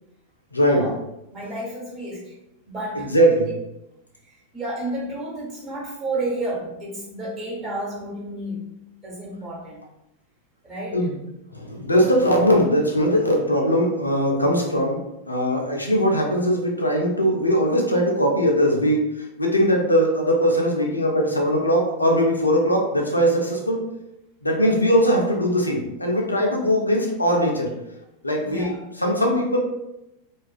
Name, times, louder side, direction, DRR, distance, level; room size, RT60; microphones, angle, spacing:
voice 1, 0.5-0.9 2.9-3.5 10.9-11.1 11.5-15.0 15.3-23.8 24.4-27.7 28.2-29.6, equal, 85° left, 0 dB, 0.4 m, -20 dB
voice 2, 1.3-2.3 2.7-3.1 4.2-8.6 9.0-9.8 10.6-11.1 28.4-28.7, right 1 dB, 30° right, -6 dB, 1.1 m, -31 dB
2.4 x 2.3 x 2.3 m, 0.88 s
figure-of-eight pair, 90°, 0 cm